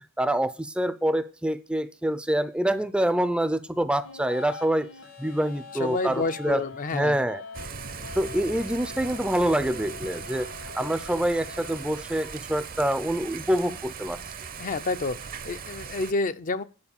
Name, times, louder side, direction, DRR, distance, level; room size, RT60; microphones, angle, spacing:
voice 1, 0.0-4.9 5.2-6.6 6.9-7.4 8.2-10.5 10.7-14.2, right 1 dB, 5° right, 0.5 m, -26 dB
sound 1, 4.0-12.0, left 4 dB, 70° left, 1.7 m, -44 dB
voice 2, 5.7-7.3 14.6-16.6, left 3 dB, 40° left, 0.6 m, -29 dB
Thunder / Rain, 7.5-16.1, right 6 dB, 45° right, 0.8 m, -39 dB
9.7 x 4.6 x 7.1 m
head